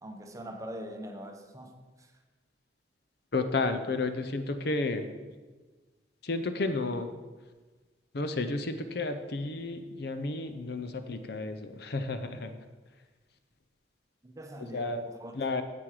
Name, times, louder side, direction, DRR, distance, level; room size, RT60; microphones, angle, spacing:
voice 1, 0.0-2.1 14.2-15.3, equal, 15° right, 4 dB, 0.8 m, -43 dB
voice 2, 3.3-5.1 6.2-7.1 8.1-12.6 14.7-15.0 15.3-15.6, left 3 dB, 55° left, 9 dB, 0.6 m, -32 dB
9.4 x 7.7 x 4.8 m, 1.3 s
head